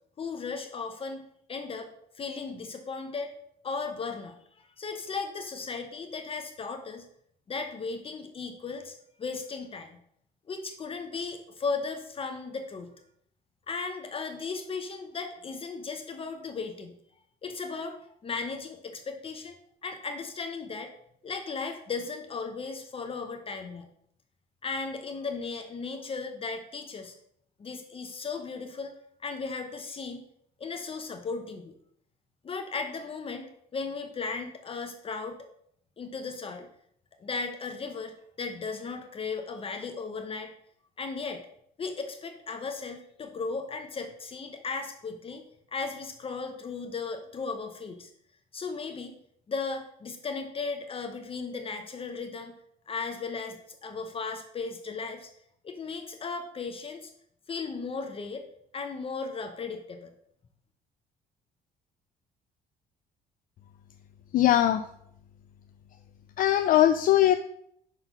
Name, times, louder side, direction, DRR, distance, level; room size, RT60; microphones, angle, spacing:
voice 1, 0.2-1.9 2.1-3.3 3.6-7.0 7.5-10.0 10.5-12.9 13.7-17.0 17.4-18.0 18.2-19.5 19.8-20.9 21.2-23.9 24.6-27.1 27.6-29.0 29.2-30.2 30.6-31.7 32.4-33.5 33.7-35.4 36.0-36.7 37.2-40.5 41.0-41.4 41.8-45.4 45.7-48.1 48.5-49.2 49.5-52.5 52.9-55.3 55.6-57.1 57.5-58.4 58.7-60.1, left 4 dB, 35° left, 5 dB, 0.7 m, -36 dB
voice 2, 64.3-64.8 66.4-67.3, left 12 dB, 55° left, 9 dB, 0.4 m, -20 dB
5.9 x 3.9 x 5.4 m, 0.70 s
cardioid pair, 110°, 17 cm